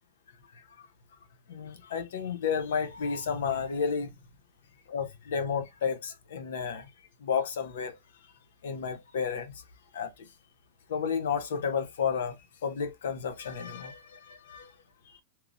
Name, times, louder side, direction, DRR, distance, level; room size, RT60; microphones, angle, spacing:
voice 1, 1.5-4.1 4.9-6.9 7.2-8.0 8.6-9.6 9.9-10.2 10.9-12.4 12.6-14.7, left 6 dB, 90° left, 0.7 m, -32 dB
3.0 x 2.1 x 2.5 m
supercardioid pair, 165°, 0 cm